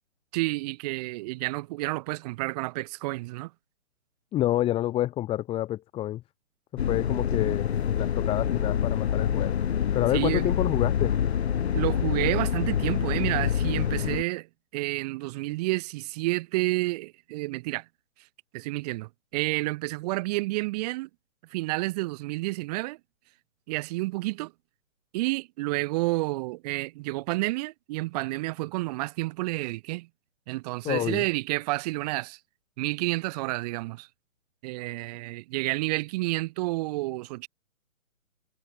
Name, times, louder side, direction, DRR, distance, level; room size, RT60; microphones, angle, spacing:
voice 1, 0.3-3.5 10.1-10.5 11.7-14.5 14.7-17.9 18.5-21.1 21.5-23.0 23.7-24.5 25.1-30.1 30.5-32.4 32.8-34.1 34.6-37.5, right 21 dB, 30° right, 4.3 m, -30 dB
voice 2, 4.3-6.2 6.7-9.6 9.9-11.1 30.8-31.2, left 14 dB, 15° left, 1.8 m, -28 dB
sound 1, 6.8-14.2, left 8 dB, 50° left, 1.2 m, -26 dB
figure-of-eight pair, 135°, 41 cm